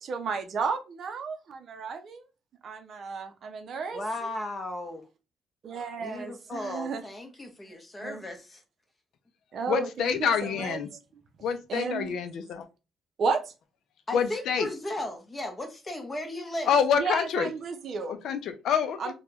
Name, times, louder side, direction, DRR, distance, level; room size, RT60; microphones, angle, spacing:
voice 1, 0.0-2.2 2.6-4.0 5.6-7.0 8.0-8.2 9.5-10.8 11.7-12.1 13.2-13.5 17.0-18.2 19.0-19.1, right 5 dB, 50° right, 0.5 m, -33 dB
voice 2, 3.9-5.1 6.0-8.6 14.1-16.7, left 1 dB, 20° left, 0.8 m, -36 dB
voice 3, 9.7-10.9 11.4-12.7 14.1-14.7 16.7-17.5 18.1-19.1, left 7 dB, 70° left, 0.4 m, -27 dB
3.3 x 2.2 x 2.9 m
cardioid pair, 140°, 0 cm